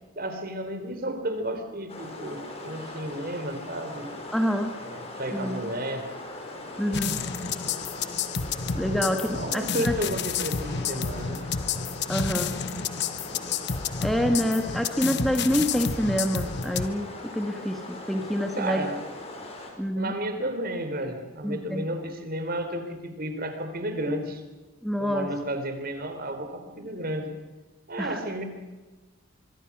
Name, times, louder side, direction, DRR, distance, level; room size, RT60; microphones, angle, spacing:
voice 1, 0.2-4.1 4.8-6.0 8.8-11.4 18.5-19.0 20.0-24.4 25.0-27.3 27.9-28.4, right 1 dB, 45° right, 7 dB, 3.8 m, -32 dB
sound 1, 1.9-19.7, left 2 dB, 30° left, 4.8 m, -40 dB
voice 2, 4.3-4.7 5.3-5.7 6.8-7.2 8.7-9.9 12.1-12.5 14.0-17.1 17.3-18.9 19.8-20.1 21.4-21.8 24.8-25.3 28.0-28.2, equal, ahead, 4 dB, 1.5 m, -27 dB
sound 2, 6.9-16.9, left 6 dB, 55° left, 1.1 m, -30 dB
25.0 x 24.0 x 6.1 m, 1.2 s
head